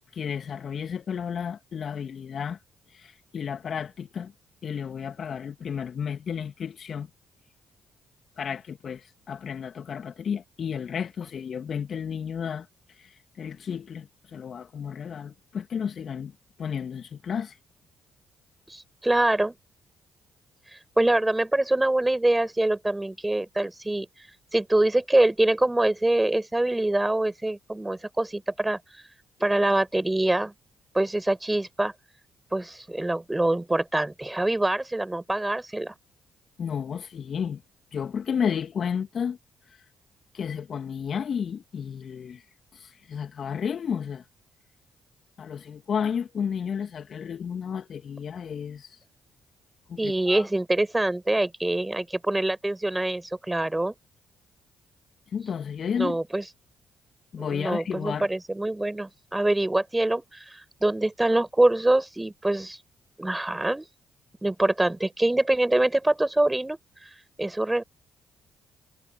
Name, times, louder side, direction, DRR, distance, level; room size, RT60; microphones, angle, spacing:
voice 1, 0.1-2.6 2.9-4.3 4.6-7.1 8.4-12.7 12.9-16.3 16.6-17.6 36.6-37.6 37.9-39.4 39.7-39.8 40.3-42.4 42.7-44.2 45.4-49.0 49.9-50.5 55.3-56.2 57.3-58.3, left 7 dB, 55° left, 2.6 m, -32 dB
voice 2, 18.7-19.5 21.0-24.1 24.5-28.8 29.4-30.5 30.9-31.9 32.5-35.9 50.0-53.9 56.0-56.4 57.4-62.8 63.2-63.8 64.4-66.8 67.4-67.8, right 1 dB, 15° right, 7.3 m, -24 dB
hypercardioid pair, 45°, 0 cm